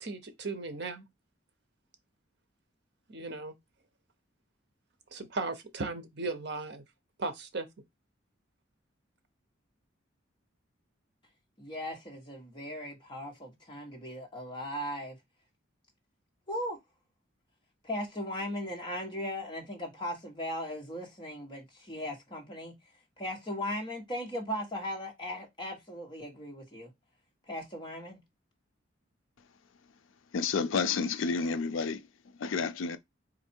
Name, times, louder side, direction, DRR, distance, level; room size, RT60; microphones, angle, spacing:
voice 1, 0.0-1.1 3.1-3.5 5.1-6.8 7.2-7.7, right 3 dB, 55° right, 0.7 m, -36 dB
voice 2, 11.6-15.2 16.5-16.8 17.8-22.7 23.2-26.9 27.5-28.2, equal, 25° left, 1.3 m, -38 dB
voice 3, 30.3-33.0, left 5 dB, 75° left, 0.4 m, -31 dB
4.1 x 2.6 x 4.4 m
head